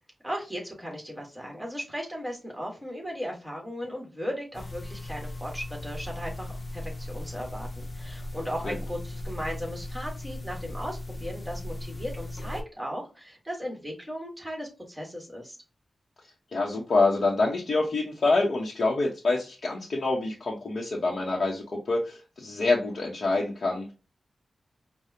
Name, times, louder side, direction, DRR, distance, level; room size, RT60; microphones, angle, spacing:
voice 1, 0.2-15.6, equal, 5° right, -1 dB, 1.8 m, -37 dB
sound 1, 4.5-12.6, left 1 dB, 35° left, 0.6 m, -37 dB
voice 2, 16.5-23.9, left 3 dB, 65° left, -3 dB, 0.9 m, -26 dB
5.0 x 2.3 x 2.8 m, 0.29 s
wide cardioid pair, 100°, 0 cm